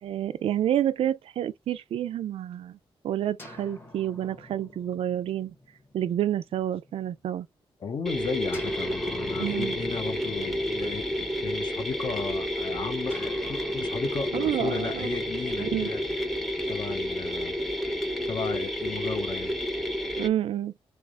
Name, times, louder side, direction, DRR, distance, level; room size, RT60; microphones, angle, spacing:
voice 1, 0.0-2.8 3.0-5.5 5.9-7.5 9.4-9.8 14.3-15.1 15.6-15.9 20.2-20.7, right 11 dB, 80° right, 0.4 m, -29 dB
sound 1, 3.4-7.2 8.5-12.1 13.1-17.2, left 1 dB, 20° left, 1.1 m, -47 dB
voice 2, 7.8-16.0 16.7-17.5 18.3-19.6, left 6 dB, 50° left, 0.7 m, -35 dB
sound 2, 8.1-20.3, equal, ahead, 0.7 m, -30 dB
3.4 x 3.0 x 3.7 m
wide cardioid pair, 170°, 10 cm